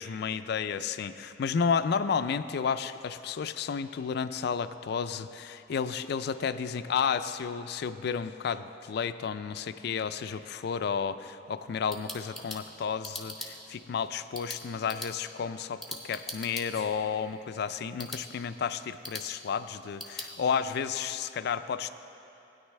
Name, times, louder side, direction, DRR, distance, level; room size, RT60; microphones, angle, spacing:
voice 1, 0.0-21.9, left 6 dB, 60° left, 12 dB, 0.3 m, -32 dB
sound 1, 11.6-20.3, left 1 dB, ahead, 1.0 m, -44 dB
16.5 x 9.6 x 3.2 m, 2.9 s
head